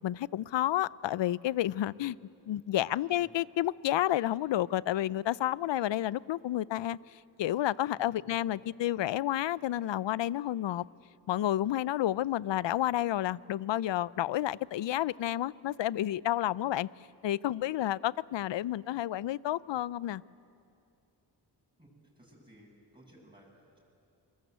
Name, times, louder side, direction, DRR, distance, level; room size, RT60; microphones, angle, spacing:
voice 1, 0.0-2.2 2.5-7.0 7.4-10.8 11.3-16.9 17.2-20.2, left 13 dB, 75° left, 21 dB, 0.5 m, -30 dB
voice 2, 7.9-8.5 21.8-21.9 22.1-23.8, right 1 dB, 10° right, -3 dB, 7.6 m, -58 dB
26.5 x 20.5 x 8.1 m, 2.6 s
cardioid pair, 55°, 44 cm